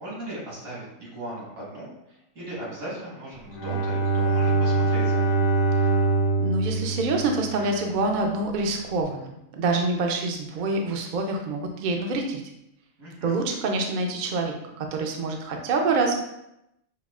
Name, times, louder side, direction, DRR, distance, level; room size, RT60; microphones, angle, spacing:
voice 1, 0.0-5.4 13.0-13.4, right 1 dB, 85° right, -6 dB, 2.0 m, -38 dB
Bowed string instrument, 3.5-8.0, right 3 dB, 85° left, 1.2 m, -24 dB
voice 2, 6.4-12.4 13.2-16.2, right 3 dB, 60° right, 2 dB, 0.5 m, -26 dB
5.6 x 2.4 x 2.3 m, 0.84 s
omnidirectional pair, 1.4 m